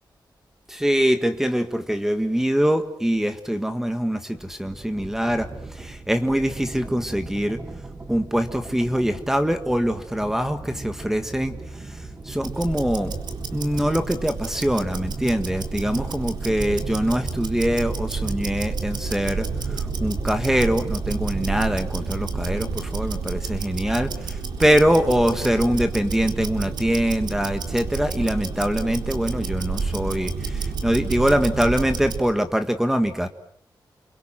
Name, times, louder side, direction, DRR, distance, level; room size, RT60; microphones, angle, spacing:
voice 1, 0.7-7.6 8.1-13.1 13.5-33.3, equal, 5° right, 8 dB, 1.7 m, -23 dB
sound 1, 4.3-21.8, right 3 dB, 25° right, 1.6 m, -38 dB
Tick-tock, 12.4-32.3, right 4 dB, 70° right, 4.1 m, -30 dB
29.5 x 24.0 x 7.5 m, 0.65 s
wide cardioid pair, 155°, 8 cm